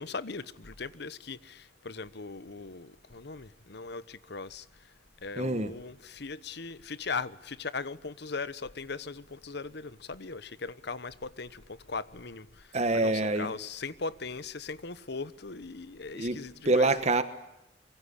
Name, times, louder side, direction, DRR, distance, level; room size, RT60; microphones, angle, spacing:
voice 1, 0.0-4.6 5.2-12.5 12.9-16.9, left 4 dB, 65° left, 1.1 m, -39 dB
voice 2, 5.4-5.7 12.7-13.5 16.1-17.2, right 2 dB, 40° right, 1.4 m, -26 dB
24.5 x 23.0 x 9.9 m
head